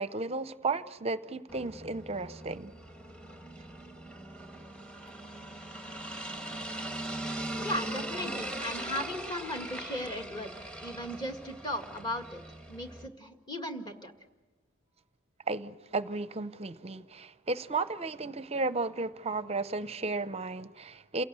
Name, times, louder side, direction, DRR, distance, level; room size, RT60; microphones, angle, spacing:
voice 1, 0.0-2.7 15.5-21.2, right 3 dB, 30° right, 0.7 m, -34 dB
sound 1, 1.5-13.1, right 1 dB, 5° left, 1.3 m, -40 dB
voice 2, 7.6-12.4 12.7-14.1, left 1 dB, 20° left, 1.9 m, -37 dB
28.5 x 17.5 x 8.2 m
head